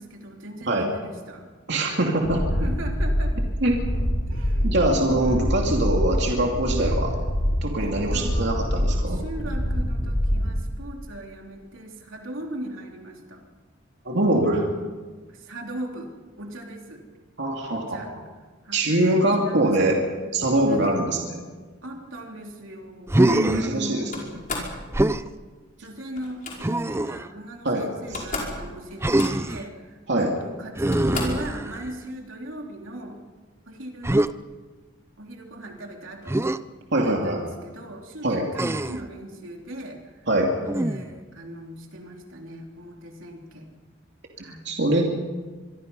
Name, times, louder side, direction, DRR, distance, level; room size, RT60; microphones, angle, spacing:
voice 1, 0.0-1.4 1.8-2.1 2.6-3.4 4.3-4.7 5.2-5.7 7.8-8.5 9.1-13.4 15.3-16.1 16.4-17.0 17.7-18.1 18.6-19.9 20.7-21.0 21.8-24.1 25.8-33.2 33.7-34.2 35.2-36.5 37.0-40.3 40.6-43.7 44.4-44.6, right 1 dB, 80° right, 1 dB, 3.3 m, -39 dB
voice 2, 1.7-2.5 3.6-3.8 4.6-7.2 7.6-9.2 14.0-14.7 17.4-18.0 18.7-20.0 20.3-21.4 23.2-24.2 27.6-28.2 30.1-30.3 36.9-37.4 38.2-38.4 40.3-40.5 44.4-45.2, right 1 dB, 60° right, 0 dB, 2.7 m, -23 dB
sound 1, 2.2-10.7, equal, 85° left, 4.7 m, -25 dB
Human voice, 23.1-23.7 24.9-25.3 26.6-27.3 29.0-29.7 30.8-32.0 34.0-34.3 36.3-36.6 38.5-39.1 40.7-41.2, right 1 dB, 15° right, 0.5 m, -23 dB
Slam, 24.1-24.8 26.2-26.6 27.7-27.8 28.0-28.6 28.9-29.6 30.4-30.5 30.9-31.5, left 3 dB, 45° left, 5.2 m, -33 dB
25.5 x 22.5 x 5.5 m, 1.3 s
head